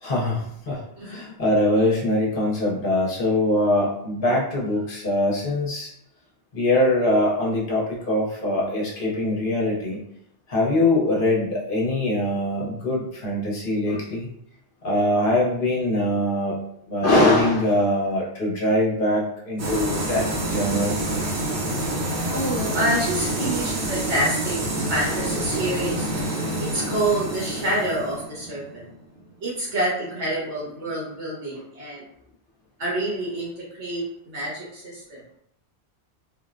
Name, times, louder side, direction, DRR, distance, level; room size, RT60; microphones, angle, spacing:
voice 1, 0.0-5.9 6.5-10.0 10.5-14.3 14.8-16.6 16.9-21.0, left 1 dB, 55° left, -4 dB, 0.9 m, -22 dB
voice 2, 1.0-1.3 22.3-24.6 24.9-26.1 26.6-28.9 29.4-32.0 32.8-35.2, right 1 dB, 85° right, -7 dB, 1.6 m, -27 dB
sound 1, 19.6-29.2, right 1 dB, 70° right, 0.9 m, -27 dB
3.5 x 2.1 x 2.5 m, 0.74 s
omnidirectional pair, 1.1 m